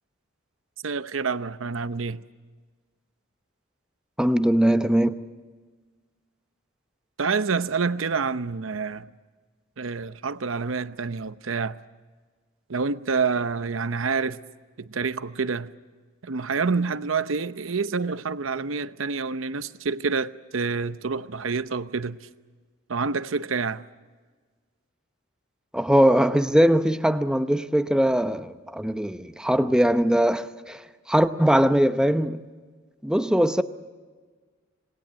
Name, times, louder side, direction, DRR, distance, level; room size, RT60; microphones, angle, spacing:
voice 1, 0.8-2.2 7.2-9.1 9.8-11.8 12.7-14.4 14.8-15.7 16.2-22.2 22.9-23.8, right 4 dB, 75° right, 0.8 m, -27 dB
voice 2, 4.2-5.2 25.7-32.4 33.0-33.6, equal, 5° right, 0.8 m, -21 dB
27.0 x 20.0 x 7.6 m
head